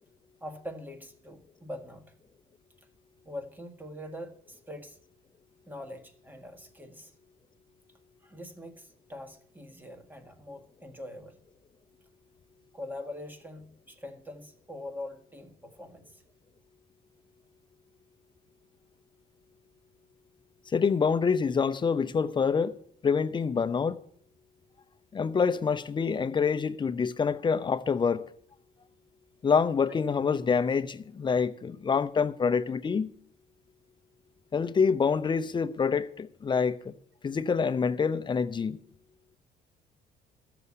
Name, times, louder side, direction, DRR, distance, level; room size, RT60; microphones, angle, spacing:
voice 1, 0.4-2.1 3.2-5.0 5.7-7.1 8.2-11.4 12.7-16.2, left 1 dB, 10° right, 1.6 m, -43 dB
voice 2, 20.7-22.8 23.0-24.0 25.1-28.3 29.4-33.1 34.5-36.9 37.2-38.8, left 5 dB, 30° left, 0.7 m, -26 dB
14.0 x 6.9 x 8.5 m
cardioid pair, 110°, 17 cm